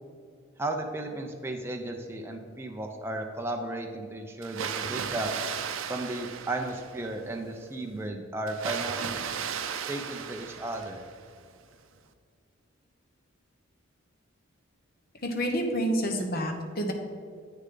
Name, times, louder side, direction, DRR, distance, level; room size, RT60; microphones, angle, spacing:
voice 1, 0.6-5.3 5.9-9.2 9.9-11.0, right 2 dB, 10° right, 2 dB, 0.5 m, -34 dB
Water, 4.4-7.2 8.5-11.3, right 7 dB, 70° right, 0.5 m, -35 dB
voice 2, 15.2-16.9, equal, 45° left, 3 dB, 1.0 m, -28 dB
8.6 x 6.7 x 3.8 m, 2.2 s
head